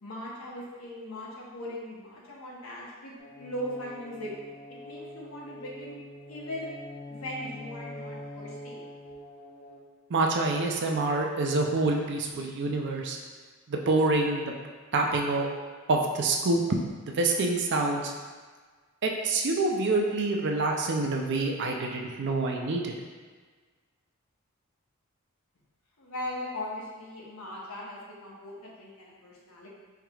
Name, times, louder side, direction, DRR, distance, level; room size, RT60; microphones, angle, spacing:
voice 1, 0.0-4.3 4.8-6.0 6.3-6.7 7.1-8.8 26.0-29.7, left 1 dB, 80° left, -4 dB, 0.9 m, -39 dB
sound 1, 3.2-9.8, left 1 dB, 35° left, 0.5 m, -44 dB
voice 2, 10.1-13.2 13.7-14.5 14.9-15.5 15.9-16.6 17.0-18.1 19.0-22.9, right 2 dB, 55° right, 1 dB, 0.5 m, -26 dB
4.6 x 2.9 x 2.3 m, 1.5 s
head